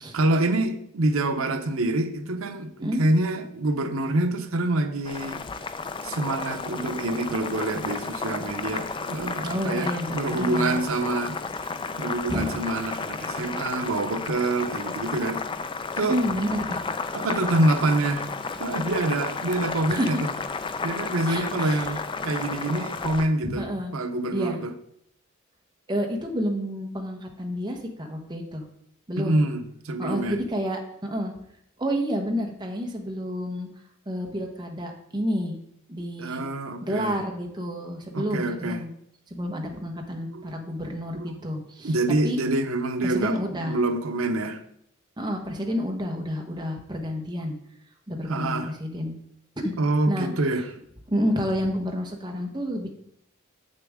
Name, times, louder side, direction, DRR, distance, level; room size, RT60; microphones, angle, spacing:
voice 1, 0.1-5.4 6.0-11.4 12.0-15.4 16.0-16.2 17.1-18.3 18.6-20.3 20.8-23.7 23.9-24.7 29.2-30.4 36.2-37.2 38.1-38.8 40.3-40.5 41.1-41.4 41.8-44.6 48.3-48.7 49.8-50.7, right 2 dB, 90° right, 0.7 m, -26 dB
Boiling, 5.0-23.3, left 4 dB, 25° left, 0.4 m, -33 dB
voice 2, 9.4-10.8 12.3-12.5 16.1-16.8 19.9-20.1 21.3-21.9 23.4-23.9 24.3-24.6 25.9-28.6 29.1-29.4 30.0-31.3 31.8-33.7 34.1-35.6 35.9-36.4 36.8-38.9 39.3-41.9 42.2-42.4 43.0-43.8 45.2-47.5 48.1-49.1 49.6-49.7 50.1-50.3 51.1-52.9, equal, 20° right, 1.1 m, -29 dB
7.8 x 6.6 x 3.6 m
head